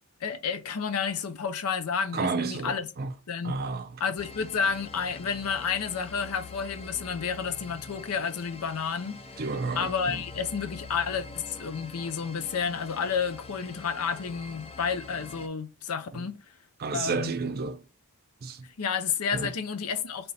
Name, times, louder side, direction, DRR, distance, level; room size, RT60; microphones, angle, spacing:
voice 1, 0.2-2.9 3.3-3.6 4.0-9.2 9.8-16.4 16.9-17.3 18.8-20.3, left 6 dB, 75° left, 0.6 m, -30 dB
voice 2, 2.1-3.1 3.4-4.0 9.4-10.3 16.1-16.2 16.8-17.8 18.4-18.7 19.3-19.5, right 4 dB, 45° right, 0.5 m, -31 dB
sound 1, 4.2-15.5, left 3 dB, 25° left, 0.5 m, -45 dB
4.1 x 2.9 x 3.2 m
head